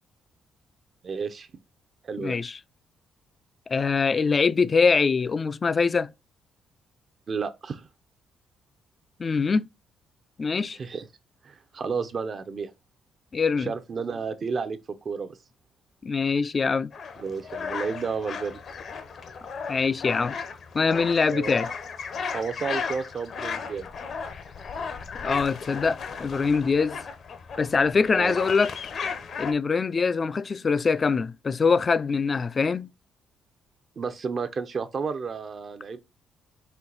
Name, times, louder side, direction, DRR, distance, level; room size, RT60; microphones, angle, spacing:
voice 1, 1.0-1.5 2.0-2.4 7.3-7.9 10.8-11.1 11.4-12.7 13.6-15.4 17.2-18.6 21.2-21.6 22.3-23.9 28.1-28.4 34.0-36.0, right 5 dB, 45° right, 0.5 m, -32 dB
voice 2, 2.2-2.6 3.7-6.1 9.2-9.7 10.4-10.8 13.3-13.7 16.0-16.9 19.7-20.4 20.7-21.7 25.2-27.0 27.6-28.7 29.4-32.9, left 5 dB, 35° left, 0.3 m, -23 dB
sound 1, 16.9-29.5, left 5 dB, 60° left, 0.7 m, -35 dB
4.4 x 2.6 x 3.9 m
cardioid pair, 90°, 0 cm